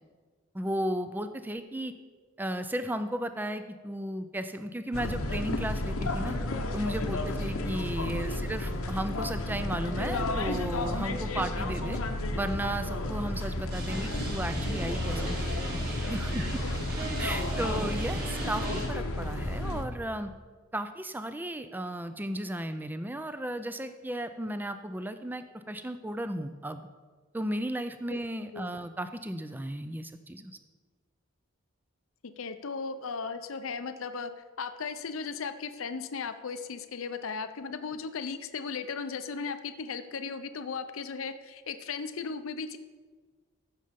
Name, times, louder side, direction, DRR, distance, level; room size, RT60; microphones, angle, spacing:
voice 1, 0.5-1.9 2.4-6.4 6.7-12.0 12.4-15.5 16.1-16.4 17.2-20.3 20.7-26.8 27.3-30.6, right 1 dB, 10° right, 10 dB, 0.4 m, -34 dB
sound 1, 4.9-19.8, left 1 dB, 85° left, 1.1 m, -32 dB
sound 2, 13.7-18.9, right 1 dB, 45° right, 3.0 m, -37 dB
voice 2, 32.2-42.8, left 5 dB, 70° left, 10 dB, 0.6 m, -36 dB
15.0 x 6.6 x 5.1 m, 1.5 s
head